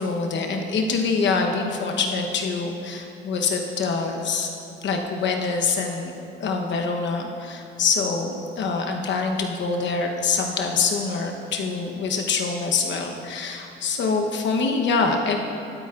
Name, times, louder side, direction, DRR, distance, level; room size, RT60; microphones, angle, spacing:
voice 1, 0.0-4.5 4.8-6.1 6.4-15.4, left 4 dB, 65° left, 3 dB, 1.0 m, -25 dB
12.0 x 8.7 x 2.5 m, 2.9 s
cardioid pair, 90°, 20 cm